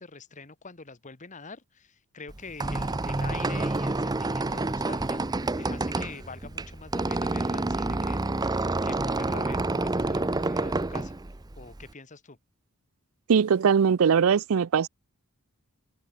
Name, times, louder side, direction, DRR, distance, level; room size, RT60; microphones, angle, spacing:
voice 1, 0.0-11.1 11.6-12.4, left 4 dB, 35° left, 1.5 m, -45 dB
Squeak, 2.3-11.9, right 2 dB, 20° right, 0.6 m, -28 dB
voice 2, 13.3-14.9, right 7 dB, 70° right, 0.4 m, -21 dB
head